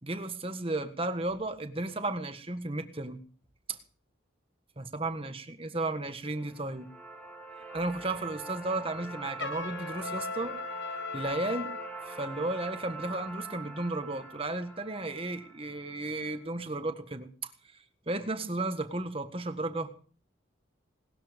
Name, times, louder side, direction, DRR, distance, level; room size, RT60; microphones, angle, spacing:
voice 1, 0.0-3.2 3.7-3.8 4.8-6.9 7.7-10.6 11.1-11.7 12.1-17.5 18.1-20.0, right 2 dB, 30° right, 8 dB, 1.6 m, -34 dB
sound 1, 6.3-16.4, right 3 dB, 5° left, 4.3 m, -44 dB
Trumpet, 9.4-11.9, left 4 dB, 65° left, 1.1 m, -37 dB
19.5 x 13.0 x 5.2 m, 0.43 s
head